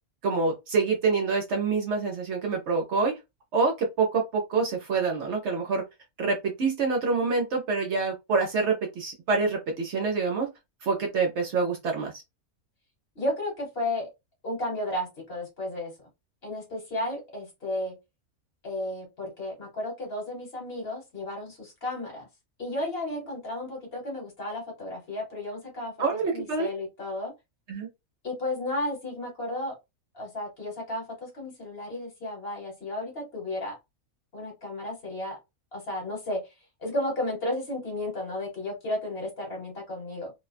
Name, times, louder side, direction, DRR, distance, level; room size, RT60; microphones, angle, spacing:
voice 1, 0.2-3.2 3.5-5.8 6.2-10.5 10.8-12.1 26.0-26.7 27.7-27.9, right 4 dB, 60° right, 0.9 m, -26 dB
voice 2, 13.1-14.1 14.4-15.9 16.4-18.0 18.6-22.3 22.6-27.3 28.2-29.7 30.1-33.8 34.3-35.4 35.7-36.5 36.8-40.3, left 1 dB, 45° left, 1.3 m, -33 dB
2.5 x 2.2 x 2.4 m
omnidirectional pair, 1.5 m